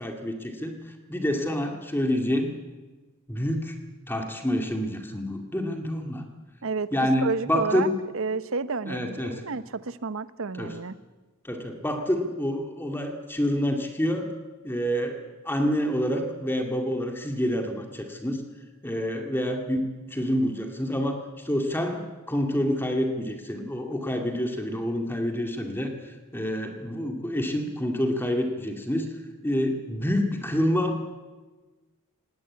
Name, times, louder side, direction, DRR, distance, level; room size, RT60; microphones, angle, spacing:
voice 1, 0.0-2.5 3.3-3.8 4.1-6.2 6.9-8.0 8.9-9.4 10.6-10.7 11.4-14.3 14.6-18.4 18.8-29.1 29.4-31.1, equal, 10° left, 4 dB, 2.1 m, -27 dB
voice 2, 7.2-7.9 8.1-10.9, right 4 dB, 65° right, 15 dB, 0.8 m, -30 dB
18.5 x 18.0 x 9.6 m, 1.3 s
head